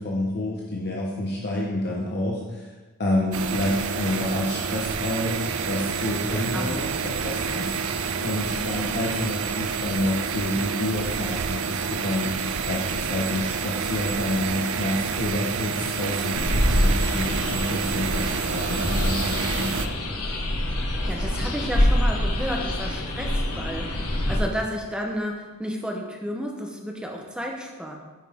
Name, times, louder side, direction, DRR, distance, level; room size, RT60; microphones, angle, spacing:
voice 1, 0.0-2.7 3.0-7.7 8.2-12.8 13.1-19.9, left 1 dB, 50° left, -3 dB, 0.9 m, -28 dB
sound 1, 3.3-19.9, right 5 dB, 70° right, 0.5 m, -28 dB
voice 2, 5.9-6.8 21.0-24.0 24.3-27.9, equal, 5° right, 0 dB, 0.8 m, -32 dB
sound 2, 16.3-24.4, left 1 dB, 85° left, 1.1 m, -25 dB
9.1 x 5.4 x 3.6 m, 1.2 s
head